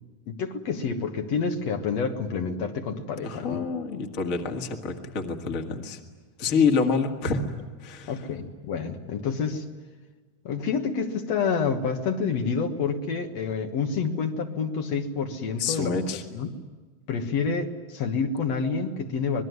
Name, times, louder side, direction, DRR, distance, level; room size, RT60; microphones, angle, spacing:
voice 1, 0.3-3.7 8.1-9.7 10.4-15.9 16.3-16.6 17.1-19.4, left 5 dB, 65° left, 4 dB, 2.5 m, -28 dB
voice 2, 3.2-6.0 6.4-7.4 7.8-8.1 15.6-16.2, left 5 dB, 30° left, 4 dB, 1.9 m, -27 dB
26.0 x 21.0 x 9.5 m, 1.4 s
omnidirectional pair, 3.3 m